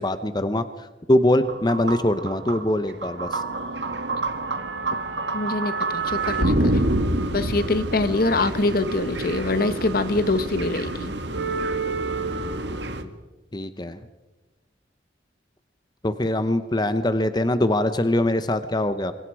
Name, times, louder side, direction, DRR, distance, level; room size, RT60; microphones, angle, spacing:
voice 1, 0.0-3.4 13.5-14.0 16.0-19.1, left 1 dB, 25° left, 11 dB, 0.9 m, -23 dB
sound 1, 1.4-13.0, right 2 dB, 75° right, 1.7 m, -27 dB
voice 2, 5.3-6.8 7.3-11.2, left 2 dB, 55° left, 12 dB, 1.2 m, -24 dB
27.0 x 23.0 x 4.8 m, 1.1 s
head